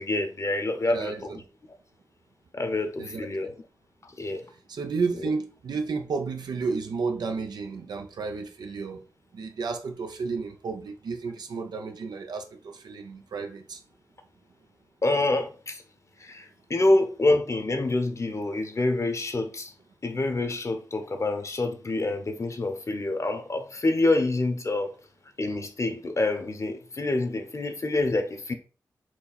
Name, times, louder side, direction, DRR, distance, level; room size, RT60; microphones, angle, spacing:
voice 1, 0.0-1.4 2.5-3.5 4.0-4.4 15.0-15.8 16.2-19.7 20.0-24.9 25.4-28.5, left 2 dB, 45° left, 0.9 m, -27 dB
voice 2, 0.9-1.4 3.0-3.5 4.7-9.0 9.3-13.8, right 4 dB, 80° right, 0.7 m, -32 dB
4.5 x 2.7 x 4.1 m
cardioid pair, 45°, 7 cm